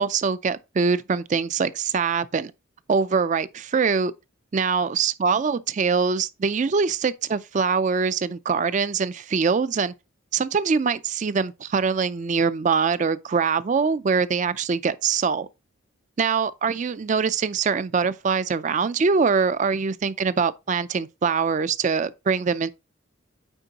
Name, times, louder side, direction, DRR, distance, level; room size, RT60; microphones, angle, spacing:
voice 1, 0.0-2.5 2.9-4.1 4.5-9.9 10.3-15.5 16.2-22.7, right 5 dB, 35° right, 0.3 m, -23 dB
8.9 x 4.5 x 2.8 m
head